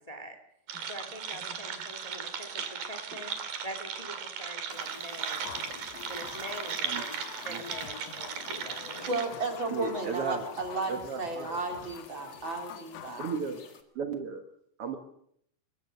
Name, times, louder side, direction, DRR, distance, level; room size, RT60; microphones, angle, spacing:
voice 1, 0.1-0.4 0.9-3.3 3.6-7.2 7.4-9.1, equal, 15° left, 7 dB, 1.2 m, -44 dB
sound 1, 0.7-9.3, right 7 dB, 55° right, 3.6 m, -37 dB
sound 2, 4.7-13.8, left 6 dB, 45° left, 2.4 m, -51 dB
sound 3, 5.5-13.4, left 10 dB, 75° left, 3.2 m, -46 dB
voice 2, 9.1-13.3, right 2 dB, 30° right, 3 dB, 4.2 m, -34 dB
voice 3, 9.7-10.4 10.9-11.6 12.1-12.2 13.2-13.6 13.9-14.4 14.8-15.0, right 5 dB, 75° right, 5 dB, 1.3 m, -34 dB
23.0 x 22.0 x 6.7 m, 0.69 s
omnidirectional pair, 5.1 m